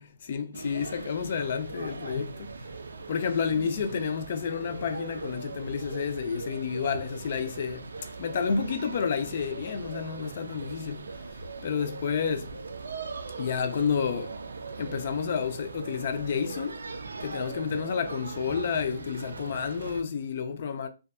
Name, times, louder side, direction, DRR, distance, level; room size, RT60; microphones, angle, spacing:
voice 1, 0.0-2.5 3.1-7.9 8.2-11.2 11.6-12.6 13.4-14.3 14.8-16.9 17.2-20.9, left 6 dB, 45° left, 0.4 m, -30 dB
sound 1, 0.5-20.0, right 4 dB, 85° right, 0.3 m, -40 dB
2.5 x 2.2 x 2.4 m
hypercardioid pair, 160°, 0 cm